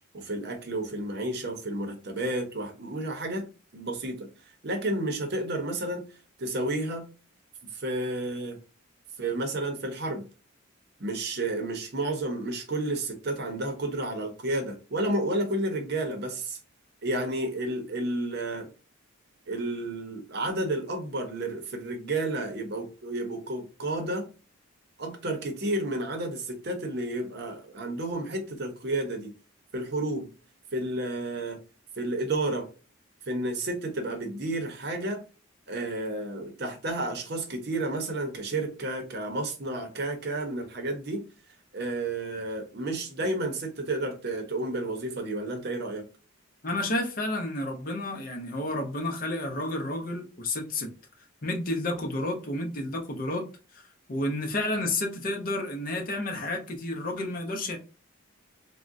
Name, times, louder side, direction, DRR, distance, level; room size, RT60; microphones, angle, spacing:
voice 1, 0.1-3.4 3.7-4.3 4.6-6.1 6.4-7.1 7.7-8.6 9.2-10.2 11.0-16.6 17.0-18.7 19.5-24.3 25.0-29.3 29.7-30.3 30.7-31.6 32.0-32.7 33.3-35.2 35.7-41.2 41.7-46.1, right 2 dB, 50° right, 0.7 m, -31 dB
voice 2, 46.6-50.9 51.4-53.5 53.7-53.8 54.1-57.8, left 1 dB, 40° left, 0.6 m, -31 dB
3.6 x 2.1 x 2.5 m
head